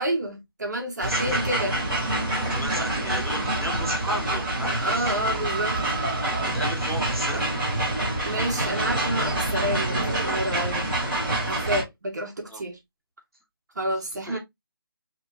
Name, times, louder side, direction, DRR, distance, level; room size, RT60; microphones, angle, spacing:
voice 1, 0.0-1.8 4.8-5.8 8.2-10.9 11.4-12.8 13.7-14.4, right 1 dB, 50° right, 1.0 m, -29 dB
voice 2, 1.0-1.4 2.2-5.1 6.4-7.5 12.4-12.6 14.3-14.4, right 1 dB, ahead, 1.7 m, -34 dB
sound 1, 1.0-11.8, right 1 dB, 20° right, 4.0 m, -26 dB
7.1 x 3.0 x 2.4 m
hypercardioid pair, 180°, 12 cm